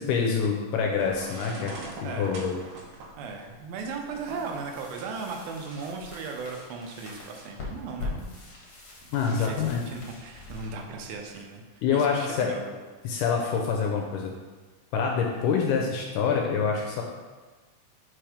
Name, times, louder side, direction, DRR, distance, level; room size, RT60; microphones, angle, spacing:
voice 1, 0.0-1.7 2.0-2.6 9.1-9.8 11.8-12.5 13.0-14.3 14.9-17.0, left 6 dB, 80° left, 1 dB, 2.0 m, -26 dB
sound 1, 0.9-5.9, right 3 dB, 75° right, 2.2 m, -44 dB
voice 2, 2.0-2.4 3.2-8.3 9.3-12.8, right 4 dB, 90° right, 3 dB, 2.6 m, -37 dB
sound 2, 4.1-11.9, left 3 dB, 50° left, 1.6 m, -43 dB
5.2 x 4.5 x 5.0 m, 1.3 s
omnidirectional pair, 4.1 m